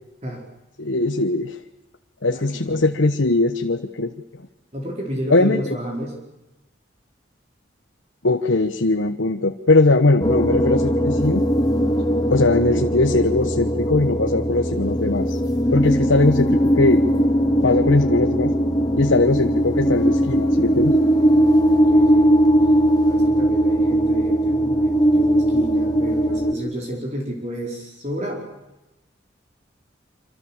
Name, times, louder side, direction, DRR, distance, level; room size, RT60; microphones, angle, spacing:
voice 1, 0.8-1.6 2.2-4.1 5.3-5.8 8.2-11.4 12.3-15.4 15.7-17.0 17.6-18.5 19.0-20.9, left 2 dB, 85° left, 6 dB, 1.1 m, -20 dB
voice 2, 2.3-2.8 4.7-6.2 21.7-22.4 23.0-28.4, equal, 35° right, 0 dB, 4.3 m, -31 dB
sound 1, 10.2-26.5, equal, 20° left, 1.7 m, -19 dB
26.5 x 26.5 x 7.3 m, 1.0 s
head